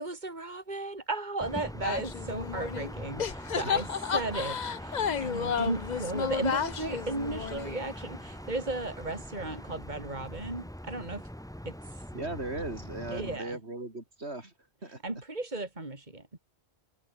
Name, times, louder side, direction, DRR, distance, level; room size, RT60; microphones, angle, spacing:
voice 1, 0.0-11.3 11.7-11.8 13.1-13.6 15.0-16.3, right 2 dB, 40° right, 3.7 m, -35 dB
sound 1, 1.4-13.4, equal, 5° left, 1.3 m, -42 dB
sound 2, 1.8-2.9 3.2-7.9, left 7 dB, 45° left, 0.8 m, -32 dB
sound 3, 2.5-9.8, right 1 dB, 25° right, 5.8 m, -55 dB
voice 2, 12.1-14.5 14.8-15.0, right 2 dB, 70° right, 4.8 m, -37 dB
omnidirectional pair, 1.1 m